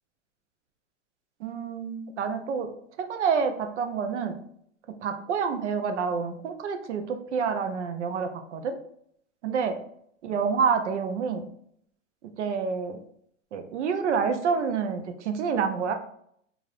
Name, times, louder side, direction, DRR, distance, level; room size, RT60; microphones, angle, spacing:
voice 1, 1.4-2.7 3.0-4.4 5.0-8.7 9.4-9.7 10.2-11.4 12.2-13.0 13.5-15.9, right 6 dB, 65° right, 7 dB, 0.5 m, -28 dB
3.2 x 2.5 x 2.4 m, 0.69 s
hypercardioid pair, 175°, 37 cm